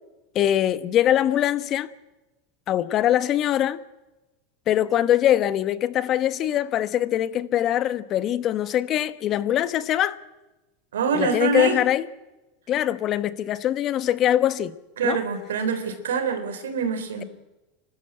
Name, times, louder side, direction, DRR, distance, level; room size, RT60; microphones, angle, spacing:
voice 1, 0.3-1.9 2.7-3.8 4.7-10.2 11.1-12.0 12.7-14.7 15.0-15.2, left 11 dB, 45° left, 1.1 m, -22 dB
voice 2, 10.9-11.8 15.0-17.2, right 5 dB, 85° right, 3.8 m, -25 dB
29.0 x 13.0 x 8.9 m
hypercardioid pair, 100°, 0 cm